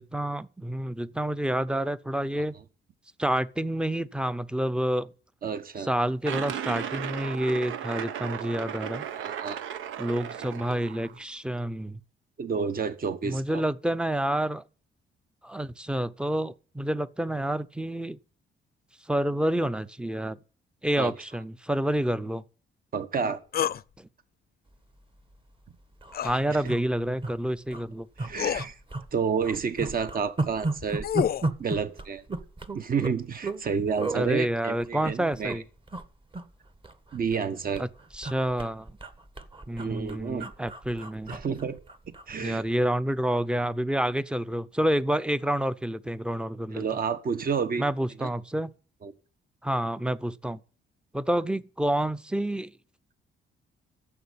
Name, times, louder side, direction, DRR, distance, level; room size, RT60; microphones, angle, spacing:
voice 1, 0.0-2.6 3.2-5.1 5.8-9.1 10.0-12.0 13.2-14.6 15.4-18.2 19.1-20.4 20.8-22.4 24.0-24.1 26.2-28.1 34.1-35.6 37.8-37.9 38.1-38.9 39.7-41.3 42.4-46.8 47.8-48.7 49.6-50.6 51.1-52.7, right 1 dB, 5° right, 0.7 m, -28 dB
voice 2, 5.4-5.9 9.1-9.6 12.4-13.6 21.0-21.1 22.9-23.4 26.5-26.6 28.2-28.8 29.1-31.0 31.6-32.2 32.7-35.6 37.1-37.8 39.8-40.5 41.3-41.8 42.3-42.6 46.7-47.8 48.2-48.3 49.0-49.1, right 6 dB, 45° right, 1.4 m, -30 dB
sound 1, 6.2-11.2, right 9 dB, 80° right, 0.9 m, -35 dB
sound 2, 23.5-23.8 26.1-26.4 27.7-27.8 28.3-28.7 30.6-31.5, left 10 dB, 50° left, 0.6 m, -28 dB
sound 3, 25.2-25.4 25.6-25.7 25.9-26.2 26.6-27.3 27.7-27.8 28.2-29.1 29.4-33.6 34.0-34.2 34.8-35.6 35.9-36.1 36.3-37.5 37.7-42.3 42.6-42.8, right 2 dB, 25° right, 1.5 m, -34 dB
11.0 x 7.7 x 8.5 m
cardioid pair, 90°, 20 cm